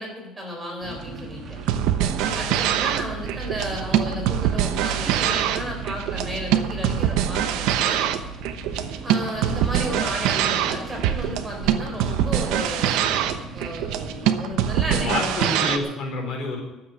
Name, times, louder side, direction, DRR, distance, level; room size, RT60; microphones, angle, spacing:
voice 1, 0.0-1.6 2.3-8.1 9.0-13.1 13.5-15.9, equal, 10° right, 0 dB, 4.2 m, -33 dB
sound 1, 0.8-14.3, right 5 dB, 40° right, 2.6 m, -37 dB
sound 2, 1.6-15.8, right 10 dB, 85° right, 1.0 m, -24 dB
voice 2, 14.9-16.6, left 3 dB, 50° left, 1 dB, 4.1 m, -29 dB
12.5 x 7.9 x 9.0 m, 1.0 s
cardioid pair, 150°, 0 cm